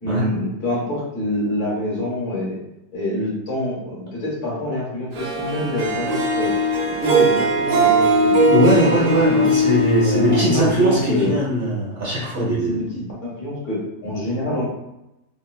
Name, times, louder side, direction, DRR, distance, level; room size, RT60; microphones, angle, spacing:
voice 1, 0.0-2.6 2.9-6.5 7.0-9.6 10.0-11.3 12.7-14.6, left 1 dB, 85° left, -5 dB, 1.8 m, -26 dB
Harp, 5.1-11.4, right 1 dB, 80° right, 1.2 m, -20 dB
voice 2, 8.4-12.9, right 1 dB, 45° right, -6 dB, 1.1 m, -20 dB
3.7 x 2.5 x 2.3 m, 0.92 s
omnidirectional pair, 1.6 m